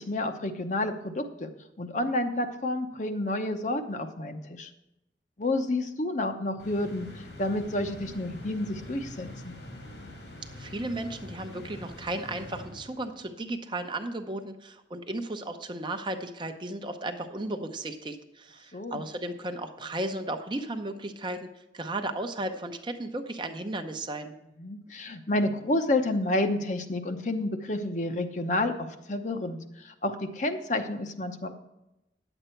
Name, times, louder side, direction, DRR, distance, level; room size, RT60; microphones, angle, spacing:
voice 1, 0.0-1.5 1.8-4.7 5.4-7.1 7.4-9.5 18.7-19.0 24.6-31.5, left 1 dB, 40° left, 7 dB, 0.8 m, -30 dB
sound 1, 6.6-13.3, left 1 dB, 80° left, 2.3 m, -44 dB
voice 2, 10.5-21.5 21.7-24.3, right 1 dB, 25° right, 6 dB, 0.7 m, -35 dB
10.0 x 8.0 x 4.5 m, 0.92 s
head